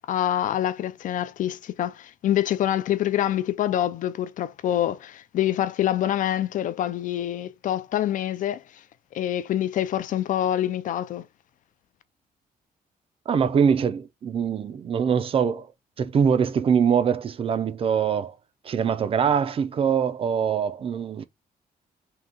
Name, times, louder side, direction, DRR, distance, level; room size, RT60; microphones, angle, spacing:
voice 1, 0.1-8.6 9.1-11.3, left 11 dB, 55° left, 0.4 m, -26 dB
voice 2, 13.3-15.7 16.0-18.4 18.6-21.2, right 7 dB, 35° right, 0.4 m, -23 dB
3.7 x 2.8 x 3.9 m
cardioid pair, 165°, 16 cm